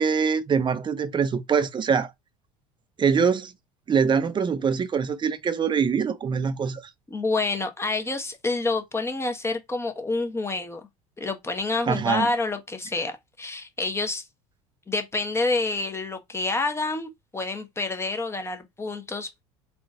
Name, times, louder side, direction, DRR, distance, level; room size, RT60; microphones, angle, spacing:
voice 1, 0.0-2.1 3.0-3.5 3.9-6.8 11.9-12.3, right 6 dB, 30° right, 0.7 m, -23 dB
voice 2, 7.1-10.8 11.2-14.2 14.9-19.4, left 3 dB, 15° left, 1.1 m, -28 dB
3.8 x 2.4 x 3.7 m
hypercardioid pair, 75°, 17 cm